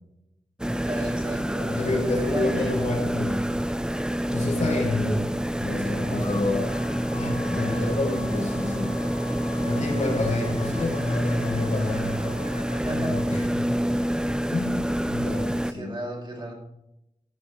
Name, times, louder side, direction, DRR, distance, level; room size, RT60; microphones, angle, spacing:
sound 1, 0.6-15.7, equal, 5° right, 0.6 m, -27 dB
voice 1, 0.7-3.0 7.5-8.0 12.8-13.2 15.7-16.5, right 1 dB, 35° right, -1 dB, 4.6 m, -34 dB
voice 2, 1.6-3.3 4.3-5.2 5.6-6.7 7.1-8.9 9.6-12.1 12.9-13.8 14.5-15.9, left 2 dB, 65° left, -2 dB, 4.7 m, -28 dB
sound 2, 6.2-13.4, left 6 dB, 85° left, 3.3 m, -40 dB
15.5 x 6.7 x 4.5 m, 0.85 s
wide cardioid pair, 80°, 14 cm